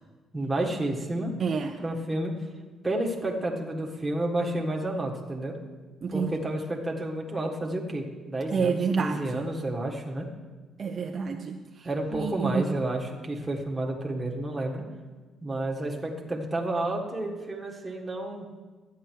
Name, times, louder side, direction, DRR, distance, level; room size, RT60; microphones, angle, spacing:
voice 1, 0.3-1.3 1.8-2.3 2.8-5.6 6.1-10.3 11.8-14.8 15.4-18.5, right 1 dB, 10° right, -2 dB, 1.6 m, -30 dB
voice 2, 1.4-1.7 6.0-6.3 8.5-9.2 10.8-12.6, right 5 dB, 40° right, 3 dB, 0.6 m, -28 dB
12.5 x 9.4 x 4.7 m, 1.3 s
cardioid pair, 120°, 0 cm